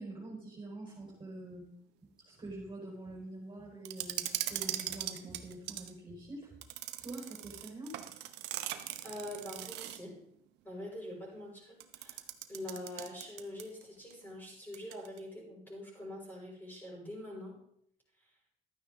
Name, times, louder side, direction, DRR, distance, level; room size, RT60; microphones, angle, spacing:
voice 1, 0.0-1.7 2.2-6.5 7.0-8.0, right 2 dB, 25° right, -2 dB, 4.2 m, -45 dB
sound 1, 3.9-5.9 6.6-10.1 11.8-13.8 14.1-14.2 14.7-15.2, right 13 dB, 90° right, 0.9 m, -40 dB
voice 2, 9.0-10.2 10.6-12.2 12.5-17.6, left 1 dB, 10° left, -3 dB, 5.6 m, -44 dB
12.5 x 9.3 x 3.8 m, 0.69 s
cardioid pair, 110°, 17 cm